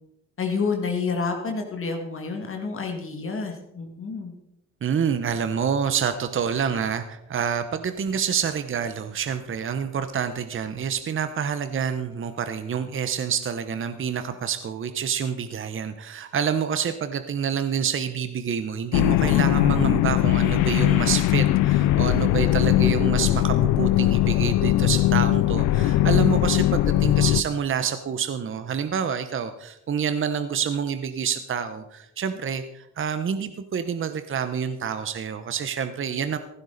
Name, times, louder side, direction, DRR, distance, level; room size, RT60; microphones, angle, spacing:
voice 1, 0.4-4.3, left 4 dB, 45° left, 2 dB, 2.2 m, -29 dB
voice 2, 4.8-36.4, right 7 dB, 45° right, 10 dB, 0.9 m, -27 dB
sound 1, 18.9-27.4, left 15 dB, 90° left, 0.5 m, -20 dB
15.5 x 12.0 x 4.1 m, 0.83 s
cardioid pair, 90°, 30 cm